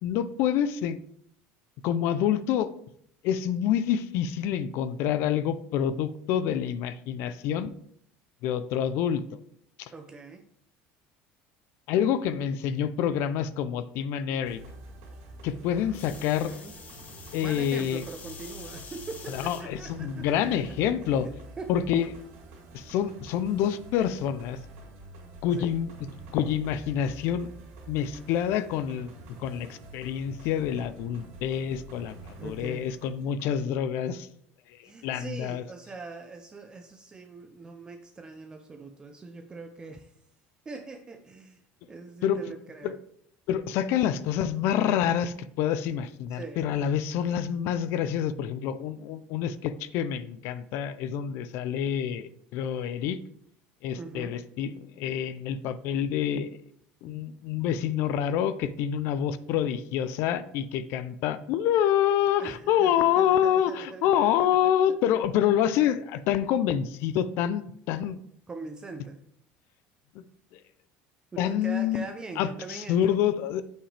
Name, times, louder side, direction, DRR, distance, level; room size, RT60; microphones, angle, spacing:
voice 1, 0.0-1.0 1.8-2.7 3.2-7.7 8.4-9.2 9.8-9.9 11.9-14.6 15.4-16.5 17.3-18.0 19.3-21.3 21.7-22.1 22.7-24.6 25.4-25.9 26.3-27.5 27.9-29.1 29.4-34.3 34.8-35.6 42.2-42.4 42.8-43.0 43.5-53.2 53.8-56.6 57.0-68.2 70.5-70.6 71.4-72.0 72.4-73.6, left 9 dB, 65° left, 14 dB, 0.5 m, -27 dB
voice 2, 9.9-10.5 15.8-16.7 17.4-20.3 21.0-21.3 21.6-21.7 25.6-25.7 32.4-32.9 34.8-40.1 40.7-41.6 41.9-43.0 46.3-46.6 54.0-54.4 62.4-65.0 68.5-69.2 71.3-73.2, right 3 dB, 20° right, 6 dB, 0.5 m, -42 dB
sound 1, 14.4-33.7, right 1 dB, 75° right, 2.2 m, -47 dB
sound 2, 15.9-19.6 20.3-20.7 22.0-22.1, left 5 dB, 35° left, 1.1 m, -46 dB
7.4 x 5.8 x 3.3 m, 0.69 s
cardioid pair, 145°, 5 cm